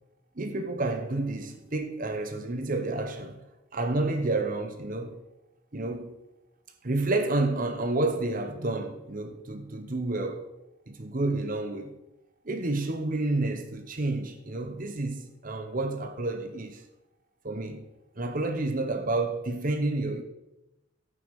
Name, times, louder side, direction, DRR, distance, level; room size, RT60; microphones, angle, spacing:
voice 1, 0.4-3.4 3.7-5.2 5.7-6.1 6.8-10.4 10.9-12.0 12.4-16.8 17.4-17.9 18.2-20.2, right 2 dB, 45° right, 1.0 m, -30 dB
11.5 x 8.9 x 5.3 m
head